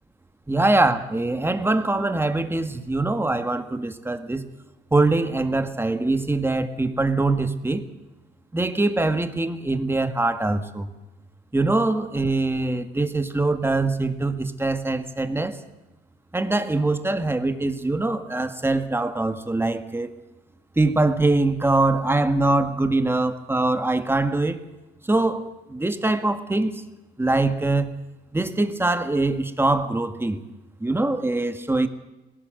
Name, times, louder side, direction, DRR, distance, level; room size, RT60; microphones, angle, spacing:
voice 1, 0.5-4.5 4.9-7.8 8.5-10.9 11.5-15.6 16.3-20.1 20.8-24.6 25.0-26.8 27.2-27.9 28.3-30.4 30.8-31.9, right 2 dB, 10° right, 9 dB, 1.8 m, -23 dB
19.5 x 17.5 x 7.9 m, 1.1 s
cardioid pair, 90°, 20 cm